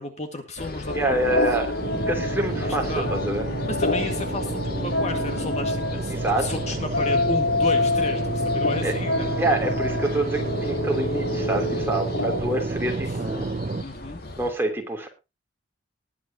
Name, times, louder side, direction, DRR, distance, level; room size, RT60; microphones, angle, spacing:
voice 1, 0.0-1.4 2.6-3.1 3.7-9.3 13.1-13.2 13.8-14.2, left 2 dB, 35° left, 5 dB, 1.9 m, -33 dB
sound 1, 0.6-14.5, left 1 dB, 55° left, 2.2 m, -38 dB
sound 2, 0.9-12.6, left 2 dB, 70° left, 1.2 m, -27 dB
voice 2, 0.9-1.7 2.1-3.4 6.1-6.5 8.8-8.9 9.4-13.5 14.4-15.1, right 1 dB, 10° right, 1 dB, 3.3 m, -26 dB
sound 3, 1.8-13.8, right 3 dB, 40° right, 0.5 m, -30 dB
20.0 x 8.7 x 2.9 m, 0.27 s
head